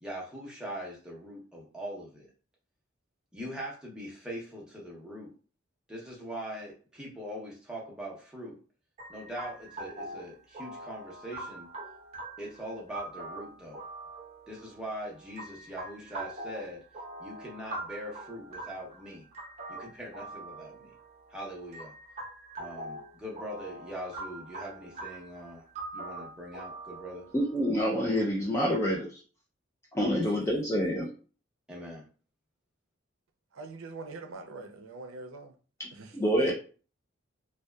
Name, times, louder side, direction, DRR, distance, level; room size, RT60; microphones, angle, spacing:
voice 1, 0.0-2.3 3.3-5.3 5.9-8.6 9.1-11.7 12.4-13.8 14.5-16.8 17.2-19.3 19.7-20.9 21.3-21.9 22.6-25.7 25.9-27.2 30.0-30.4 31.7-32.0, equal, 5° right, 0.7 m, -41 dB
sound 1, 9.0-28.2, right 2 dB, 35° right, 0.8 m, -44 dB
voice 2, 27.3-29.2 29.9-31.1 35.8-35.9 36.1-36.5, equal, 15° left, 0.4 m, -27 dB
voice 3, 33.5-35.5 35.9-36.1 36.4-36.5, right 3 dB, 90° right, 0.5 m, -42 dB
2.6 x 2.2 x 2.2 m
head